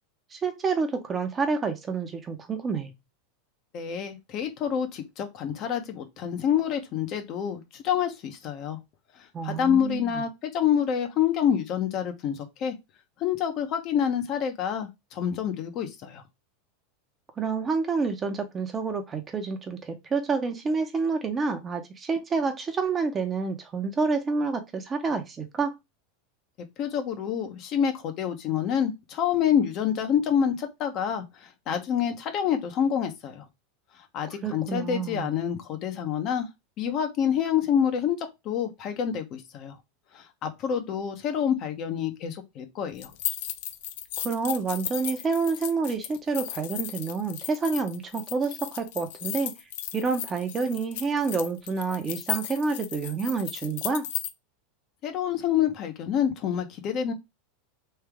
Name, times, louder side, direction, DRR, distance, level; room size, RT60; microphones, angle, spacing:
voice 1, 0.3-2.9 9.3-10.2 17.4-25.7 34.4-35.3 44.2-49.5 49.9-54.1, right 4 dB, 25° right, 0.8 m, -28 dB
voice 2, 3.7-8.8 9.4-12.8 13.2-16.2 26.8-33.4 34.1-36.5 36.8-39.7 40.1-43.1 55.0-57.1, left 8 dB, 45° left, 0.9 m, -27 dB
sound 1, 43.0-54.3, left 12 dB, 70° left, 0.4 m, -35 dB
3.3 x 2.8 x 3.5 m
supercardioid pair, 115°, 0 cm